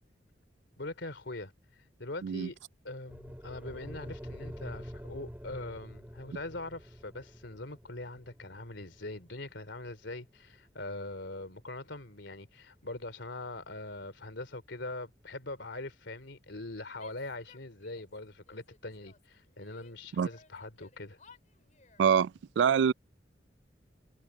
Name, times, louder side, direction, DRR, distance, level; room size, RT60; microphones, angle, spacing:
voice 1, 0.8-1.5 2.0-2.6 2.8-21.2, left 2 dB, 70° left, 3.1 m, -42 dB
sound 1, 3.1-11.3, equal, 10° right, 4.0 m, -47 dB
Female speech woman speaking / Yell, 17.0-18.2 18.5-19.9 20.3-22.1, left 4 dB, 40° left, 4.6 m, -60 dB
voice 2, 22.0-22.9, right 7 dB, 70° right, 0.3 m, -25 dB
head